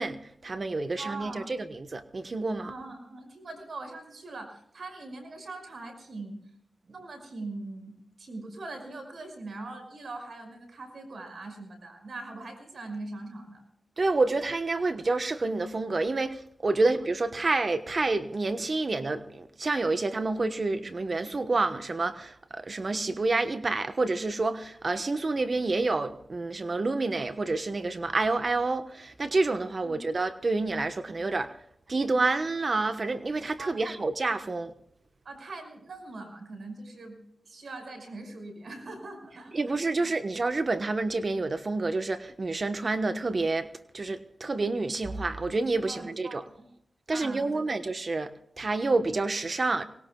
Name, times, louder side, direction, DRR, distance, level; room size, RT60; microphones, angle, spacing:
voice 1, 0.0-2.7 14.0-31.5 31.9-34.7 39.5-43.7 43.9-46.4 47.1-49.8, right 3 dB, 50° right, 1.2 m, -28 dB
voice 2, 1.0-1.6 2.6-6.4 6.8-13.6 29.8-30.0 33.6-33.9 35.2-37.2 37.4-40.1 45.8-46.7 47.1-47.8, right 2 dB, 70° right, 5.6 m, -41 dB
24.0 x 20.0 x 2.3 m
cardioid pair, 50°, 0 cm